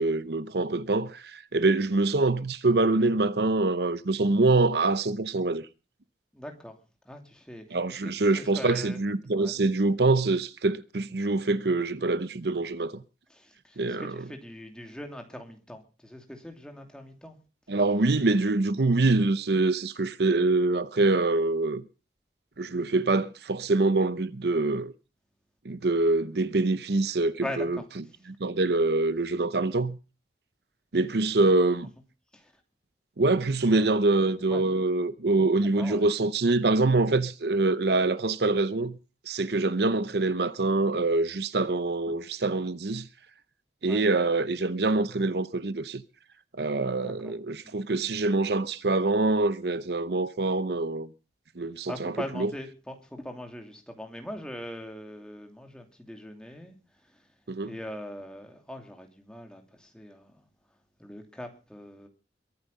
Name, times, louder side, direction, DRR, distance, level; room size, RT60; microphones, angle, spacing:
voice 1, 0.0-5.6 7.7-13.0 13.8-14.1 17.7-21.8 22.6-24.9 25.6-27.8 28.4-30.0 30.9-31.9 33.2-38.9 39.3-43.1 43.8-46.0 46.6-51.1 51.6-52.5 57.5-57.7, right 2 dB, 65° right, 0.8 m, -25 dB
voice 2, 6.3-6.8 7.0-9.0 9.3-9.6 13.3-17.4 27.4-28.1 32.3-32.5 34.3-34.6 35.6-36.1 43.8-44.1 47.0-47.3 47.6-47.7 51.9-57.3 57.6-60.4 61.0-62.1, left 1 dB, 5° left, 2.6 m, -41 dB
22.5 x 9.5 x 5.4 m
head